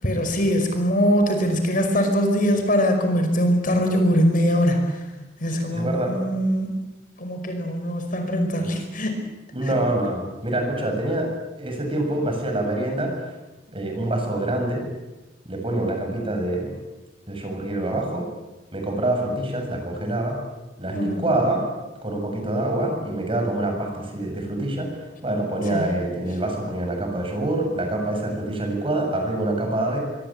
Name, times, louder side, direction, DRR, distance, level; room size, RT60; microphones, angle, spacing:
voice 1, 0.0-5.0 5.4-6.7 7.2-9.2 20.9-21.3 25.7-25.9, equal, 50° left, 5 dB, 5.4 m, -22 dB
voice 2, 5.7-6.1 9.5-11.3 11.6-13.3 13.7-14.8 15.4-16.7 17.3-18.3 18.7-20.4 20.8-21.6 22.0-24.9 25.2-30.0, right 1 dB, 30° right, 3 dB, 7.5 m, -25 dB
25.5 x 23.5 x 8.9 m, 1.1 s
head